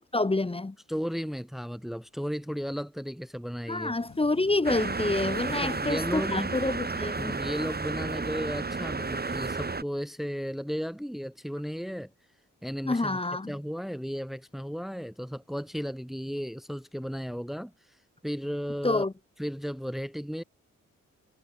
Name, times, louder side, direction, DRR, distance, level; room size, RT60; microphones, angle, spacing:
voice 1, 0.1-0.8 3.7-7.4 12.9-13.5 18.8-19.1, left 2 dB, 15° left, 0.9 m, -28 dB
voice 2, 0.9-4.0 5.5-6.5 7.2-12.1 12.6-13.2 13.5-19.0 19.4-20.4, equal, ahead, 3.2 m, -34 dB
sound 1, 3.9-7.0, left 6 dB, 55° left, 6.2 m, -51 dB
sound 2, 4.6-9.8, right 3 dB, 30° right, 2.0 m, -32 dB
supercardioid pair, 50°, 33 cm